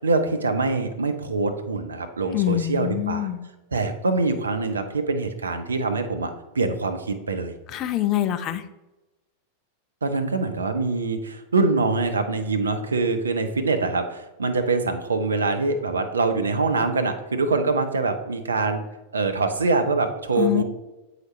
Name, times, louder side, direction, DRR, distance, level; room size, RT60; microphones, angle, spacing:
voice 1, 0.0-3.3 3.7-7.5 10.0-18.8 19.1-20.6, right 3 dB, 75° right, 7 dB, 0.7 m, -24 dB
voice 2, 2.3-3.5 7.7-8.6 20.4-20.6, left 13 dB, 35° left, 10 dB, 0.5 m, -25 dB
7.9 x 4.9 x 3.1 m, 1.0 s
figure-of-eight pair, 90°, 0 cm